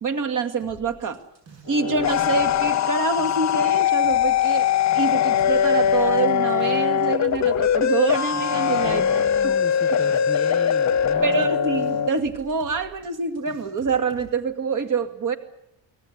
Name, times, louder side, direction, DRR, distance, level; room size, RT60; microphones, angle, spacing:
voice 1, 0.0-1.2 1.7-4.7 4.9-9.0 9.4-9.5 11.2-15.4, right 4 dB, 45° right, 8 dB, 2.4 m, -25 dB
sound 1, 0.6-3.7 3.9-10.5 10.8-14.3, right 4 dB, 90° right, 7.5 m, -48 dB
sound 2, 1.7-12.1, left 9 dB, 40° left, 0.9 m, -21 dB
voice 2, 8.8-11.5, left 3 dB, 15° left, 9 dB, 1.4 m, -36 dB
23.5 x 18.5 x 9.8 m, 0.76 s
cardioid pair, 175°, 44 cm